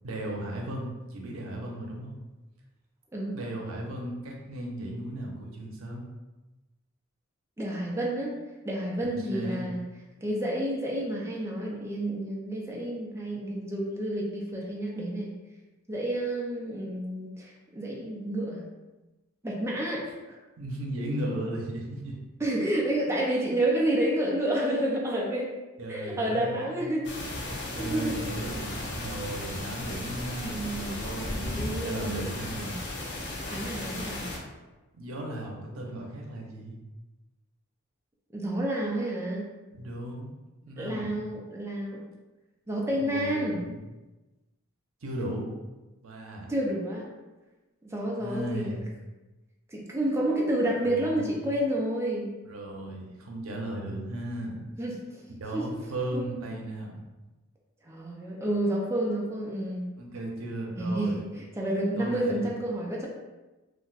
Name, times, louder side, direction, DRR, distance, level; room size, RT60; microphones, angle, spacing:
voice 1, 0.0-2.2 3.3-6.0 9.0-9.7 20.6-22.2 25.8-26.9 27.4-32.8 34.9-36.8 39.7-40.4 40.7-41.2 43.0-43.8 45.0-45.5 46.0-46.5 48.2-48.9 50.8-51.3 52.5-54.6 55.4-57.0 60.0-61.2 62.0-62.4, right 1 dB, 80° right, 0 dB, 0.6 m, -36 dB
voice 2, 7.6-8.3 8.6-9.8 10.2-15.3 15.9-18.6 19.4-20.4 22.4-25.5 25.9-27.1 27.8-28.4 30.4-31.0 31.4-32.2 32.6-32.8 33.5-34.3 38.3-39.5 40.8-42.0 42.7-43.6 46.5-47.1 47.8-48.8 49.7-52.3 54.8-55.0 55.5-55.7 56.1-56.5 57.8-59.9 60.8-63.1, right 1 dB, 15° right, -3 dB, 0.4 m, -30 dB
sound 1, 27.0-34.4, left 1 dB, 60° left, 0.6 m, -35 dB
2.5 x 2.1 x 3.9 m, 1.1 s
head